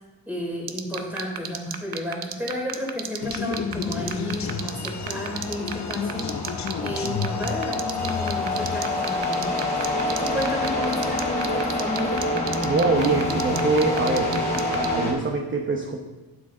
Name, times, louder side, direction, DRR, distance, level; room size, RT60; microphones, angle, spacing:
voice 1, 0.3-6.3 6.8-12.2, left 1 dB, 5° right, -3 dB, 3.3 m, -32 dB
sound 1, 0.7-14.9, right 9 dB, 70° right, 0.9 m, -31 dB
sound 2, 3.2-8.8, left 5 dB, 45° left, 0.8 m, -31 dB
sound 3, 4.0-15.1, left 2 dB, 15° left, 3.4 m, -27 dB
voice 2, 12.6-16.0, right 3 dB, 30° right, 1 dB, 0.9 m, -24 dB
11.5 x 9.4 x 3.8 m, 1.2 s
wide cardioid pair, 155°, 38 cm